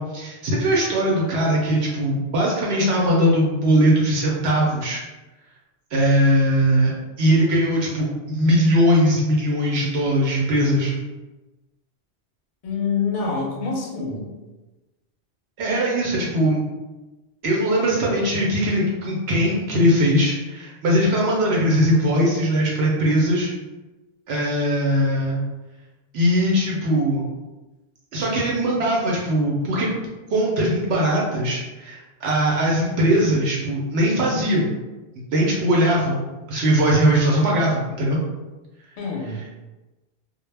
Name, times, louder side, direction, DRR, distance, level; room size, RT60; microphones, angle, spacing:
voice 1, 0.0-5.0 5.9-6.9 7.2-10.9 15.6-16.6 17.4-23.5 24.3-25.4 26.1-27.2 28.1-29.9 30.3-34.7 35.3-36.2 36.5-38.2, equal, 75° right, -3 dB, 0.8 m, -20 dB
voice 2, 12.6-14.3 39.0-39.4, left 4 dB, 60° left, -1 dB, 0.6 m, -26 dB
2.1 x 2.0 x 3.2 m, 1.1 s
omnidirectional pair, 1.1 m